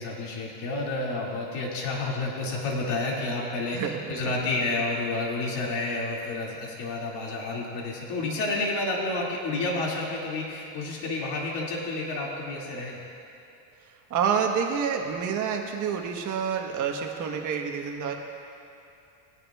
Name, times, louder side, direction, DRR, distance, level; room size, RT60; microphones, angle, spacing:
voice 1, 0.0-13.0, left 2 dB, 50° left, -3 dB, 2.4 m, -30 dB
voice 2, 3.7-4.5 14.1-18.1, right 7 dB, 35° right, 2 dB, 1.3 m, -28 dB
20.0 x 9.6 x 2.4 m, 2.8 s
supercardioid pair, 140°, 50 cm